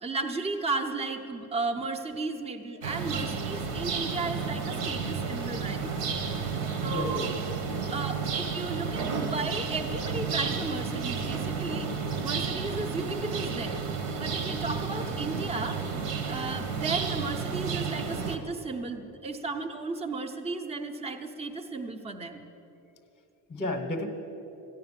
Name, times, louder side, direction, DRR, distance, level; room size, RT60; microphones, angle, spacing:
voice 1, 0.0-5.9 6.8-7.3 7.9-11.9 12.2-13.8 14.2-15.8 16.3-22.4, right 3 dB, 15° right, 7 dB, 0.5 m, -34 dB
sound 1, 2.8-18.4, right 5 dB, 90° right, 1.6 m, -32 dB
voice 2, 6.8-7.3 7.7-7.8 23.5-24.1, left 1 dB, 15° left, 3 dB, 0.8 m, -33 dB
14.0 x 10.5 x 7.3 m, 3.0 s
cardioid pair, 165°, 49 cm